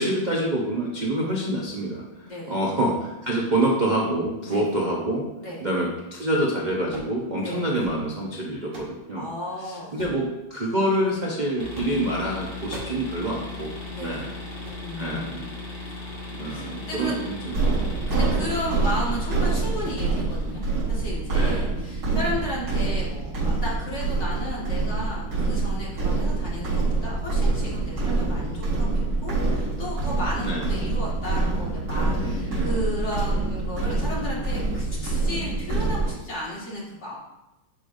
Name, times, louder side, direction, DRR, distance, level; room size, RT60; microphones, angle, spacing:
voice 1, 0.0-5.2 5.6-9.3 9.6-10.2 10.5-13.7 14.0-14.3 15.0-15.5 16.4-17.9 21.3-21.7 22.0-22.2 30.4-30.7 32.0-32.7, right 1 dB, 55° right, -3 dB, 0.5 m, -27 dB
voice 2, 2.2-2.6 4.5-4.7 5.4-5.6 7.4-7.7 9.2-10.2 13.9-14.3 14.8-15.3 15.9-17.2 18.1-20.6 20.9-37.2, left 1 dB, 35° left, -5 dB, 2.1 m, -34 dB
sound 1, 6.9-7.2 7.6-8.0 8.4-9.0 10.0-10.2 10.9-11.2 11.7-12.0 12.3-13.1 13.4-13.5 13.8-14.0 14.5-14.8 15.4-15.7 16.0-16.4 16.8-18.0 18.3-18.7 19.0-19.3 19.6-20.1 20.4-20.8 21.4-21.6 22.0-22.5 22.8-22.9 23.3-23.6 24.3-24.5 24.8-25.0 25.4-25.5, right 2 dB, 35° right, 2.3 m, -43 dB
sound 2, 11.6-21.0, left 2 dB, 70° left, 2.9 m, -38 dB
sound 3, 17.5-36.1, right 3 dB, 80° right, 3.6 m, -26 dB
11.0 x 5.0 x 2.6 m, 1.0 s
omnidirectional pair, 2.2 m